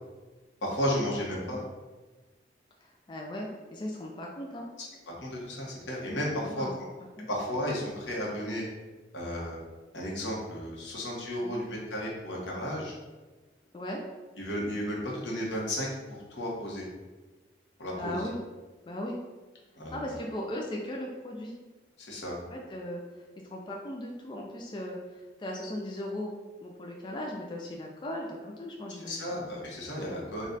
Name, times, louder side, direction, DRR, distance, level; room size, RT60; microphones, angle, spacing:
voice 1, 0.6-1.6 5.2-6.7 7.3-8.7 9.1-9.6 9.9-12.9 14.4-15.9 16.3-16.9 17.8-18.2 19.7-20.0 22.0-22.4 29.0-30.5, equal, 85° left, -3 dB, 1.1 m, -33 dB
voice 2, 2.8-4.7 6.3-6.7 7.2-7.3 11.4-11.6 13.7-14.0 17.9-18.4 18.9-19.2 19.9-21.5 22.5-23.2 23.5-26.3 26.6-29.3 30.0-30.2, left 1 dB, 25° left, -1 dB, 0.4 m, -38 dB
4.1 x 2.3 x 3.9 m, 1.2 s
head